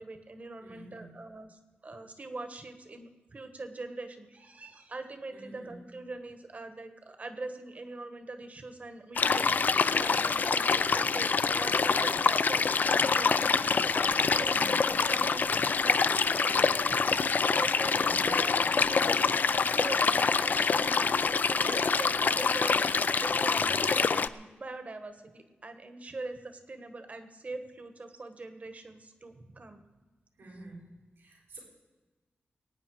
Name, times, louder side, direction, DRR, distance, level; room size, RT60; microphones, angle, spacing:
voice 1, 0.0-13.9 14.2-14.8 15.0-17.3 17.6-18.6 19.2-22.9 23.2-29.8, right 2 dB, 40° right, 8 dB, 1.5 m, -43 dB
voice 2, 0.6-1.1 5.3-5.7 14.3-14.8 17.9-18.3 30.4-30.8 31.2-31.6, right 2 dB, 85° right, -2 dB, 5.0 m, -49 dB
sound 1, 9.2-24.3, left 5 dB, 50° left, 0.4 m, -26 dB
23.0 x 9.5 x 4.9 m, 1.3 s
wide cardioid pair, 135°, 4 cm